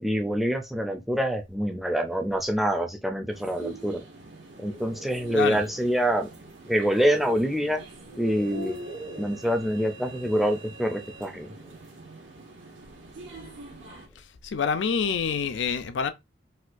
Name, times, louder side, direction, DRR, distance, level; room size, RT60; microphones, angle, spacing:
voice 1, 0.0-4.0 4.6-6.3 6.7-7.8 8.2-8.8 9.2-11.5, equal, ahead, 0.4 m, -26 dB
sound 1, 3.3-14.1, right 3 dB, 85° right, 1.2 m, -45 dB
sound 2, 4.4-5.7 7.2-7.3 8.0-9.3, right 2 dB, 55° right, 0.8 m, -40 dB
voice 2, 14.4-16.1, left 6 dB, 75° left, 0.4 m, -26 dB
4.2 x 2.2 x 2.5 m
head